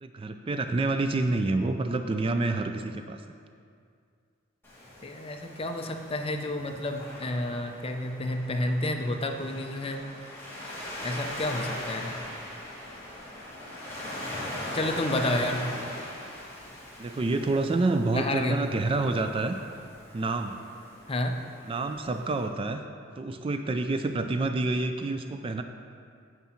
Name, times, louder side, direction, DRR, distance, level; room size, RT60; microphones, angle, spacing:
voice 1, 0.0-3.2 17.0-19.6 20.1-20.6 21.6-22.8 23.2-25.6, right 2 dB, 25° right, 7 dB, 0.3 m, -28 dB
Waves surf, 4.6-22.5, left 1 dB, 10° left, 2.2 m, -40 dB
voice 2, 5.0-10.0 11.0-12.2 14.7-15.7 18.1-18.6 21.1-21.4, left 1 dB, 30° left, 5 dB, 0.6 m, -30 dB
9.2 x 7.4 x 4.4 m, 2.3 s
head